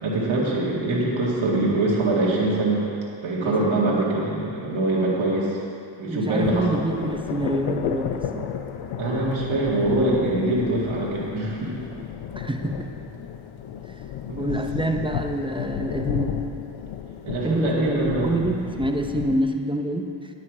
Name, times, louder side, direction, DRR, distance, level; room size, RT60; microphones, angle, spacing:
voice 1, 0.0-2.9 3.2-5.5 6.0-6.7 9.0-11.8 14.3-14.5 17.2-18.4, right 2 dB, 90° right, -5 dB, 2.1 m, -23 dB
voice 2, 3.4-4.0 6.1-8.5 12.4-12.9 14.4-16.4 17.4-20.3, right 1 dB, 10° right, 4 dB, 0.7 m, -27 dB
sound 1, 6.4-19.4, left 9 dB, 90° left, 0.7 m, -33 dB
11.0 x 8.4 x 4.8 m, 2.5 s
cardioid pair, 85°, 45 cm